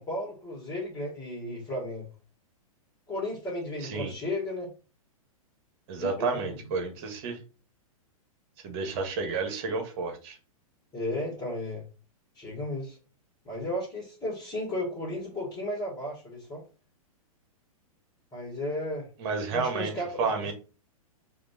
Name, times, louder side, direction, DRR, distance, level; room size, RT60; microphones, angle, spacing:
voice 1, 0.0-2.1 3.1-4.7 6.0-6.5 10.9-11.8 12.3-13.0 13.4-16.6 18.3-19.1 19.5-20.3, left 1 dB, 20° left, -5 dB, 2.0 m, -34 dB
voice 2, 3.8-4.1 5.9-7.4 8.6-10.4 19.2-19.9 20.2-20.5, right 4 dB, 45° right, 5 dB, 1.4 m, -31 dB
5.0 x 2.8 x 2.8 m, 0.34 s
hypercardioid pair, 115°, 18 cm